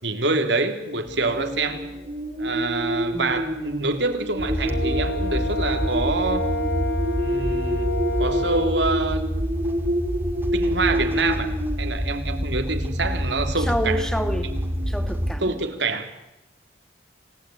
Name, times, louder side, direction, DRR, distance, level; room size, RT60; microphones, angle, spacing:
voice 1, 0.0-1.9 2.4-6.5 7.1-7.9 8.2-9.3 10.5-11.5 11.8-14.0 15.4-16.1, right 3 dB, 90° right, 6 dB, 3.2 m, -26 dB
sound 1, 1.1-15.7, equal, 35° right, 2.6 m, -29 dB
voice 2, 3.1-3.5 13.7-14.5 14.9-15.6, equal, 5° left, 8 dB, 1.9 m, -28 dB
sound 2, 4.4-15.4, equal, 10° right, 2.2 m, -28 dB
Brass instrument, 4.6-8.7, left 1 dB, 80° left, 3.7 m, -30 dB
27.5 x 18.5 x 9.3 m, 0.96 s
head